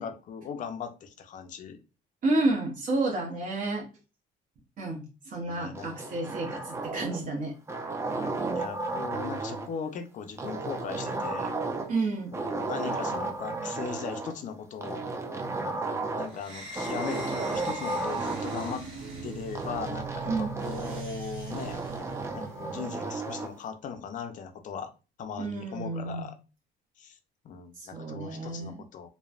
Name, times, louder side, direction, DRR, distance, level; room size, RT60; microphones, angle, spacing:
voice 1, 0.0-1.8 5.4-5.9 8.5-11.5 12.3-15.0 16.1-18.9 19.2-21.8 22.3-24.9 25.2-26.4 27.0-27.2 27.4-29.1, left 6 dB, 50° left, 7 dB, 0.5 m, -38 dB
voice 2, 2.2-3.9 4.8-7.5 11.9-12.4 20.3-20.6 25.4-26.3 27.8-28.9, right 2 dB, 50° right, -2 dB, 0.8 m, -30 dB
sound 1, 5.8-7.3 7.7-9.7 10.4-12.0 12.3-14.3 14.8-16.4 16.8-18.8 19.6-21.1 21.5-23.5, right 3 dB, 15° right, 0.5 m, -33 dB
sound 2, 16.3-22.9, right 5 dB, 85° right, 1.1 m, -41 dB
3.1 x 2.1 x 2.4 m, 0.31 s
cardioid pair, 110°, 17 cm